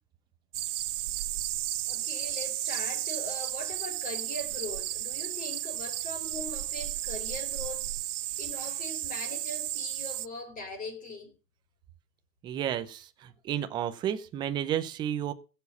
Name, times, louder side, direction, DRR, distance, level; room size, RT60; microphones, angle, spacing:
sound 1, 0.5-10.3, right 14 dB, 50° right, 0.6 m, -33 dB
voice 1, 1.9-7.9 8.4-11.3, left 2 dB, 15° left, 4.2 m, -40 dB
voice 2, 12.4-15.3, right 10 dB, 10° right, 0.6 m, -32 dB
15.5 x 7.3 x 7.0 m
hypercardioid pair, 140°, 47 cm